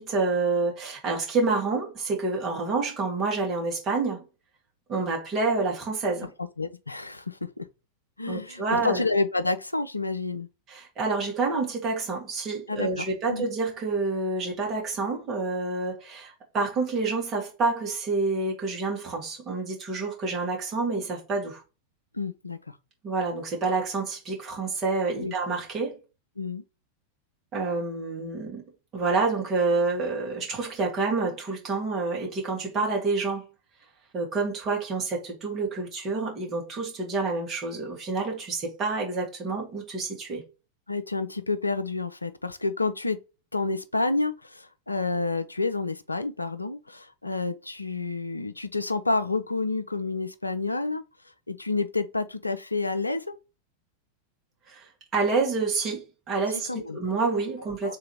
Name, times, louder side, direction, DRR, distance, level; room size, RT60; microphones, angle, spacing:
voice 1, 0.0-4.2 4.9-6.3 8.3-9.0 10.7-21.6 23.0-25.9 27.5-28.6 28.9-33.4 34.1-40.4 54.7-54.9 55.1-58.0, right 3 dB, 30° right, 1.9 m, -28 dB
voice 2, 6.6-7.7 8.2-10.5 12.7-13.5 22.1-22.8 25.2-25.3 26.4-26.6 40.9-43.2 43.5-51.0 51.5-53.4 56.7-57.0 57.8-58.0, left 3 dB, 85° left, 0.4 m, -29 dB
3.5 x 2.9 x 4.7 m
figure-of-eight pair, 90°, 0 cm